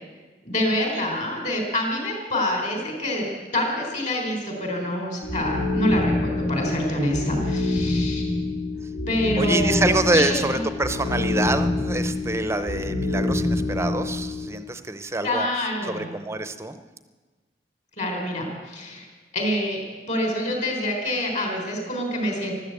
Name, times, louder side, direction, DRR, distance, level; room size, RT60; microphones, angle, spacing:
voice 1, 0.4-3.3 3.5-8.3 9.1-10.6 15.2-16.1 18.0-19.1 19.3-22.5, left 1 dB, 40° left, 2 dB, 4.1 m, -26 dB
sound 1, 5.2-14.5, left 2 dB, 80° left, 2.8 m, -26 dB
voice 2, 9.4-15.5 15.8-16.8, right 2 dB, 15° right, 9 dB, 0.6 m, -26 dB
14.0 x 12.5 x 8.1 m, 1.3 s
head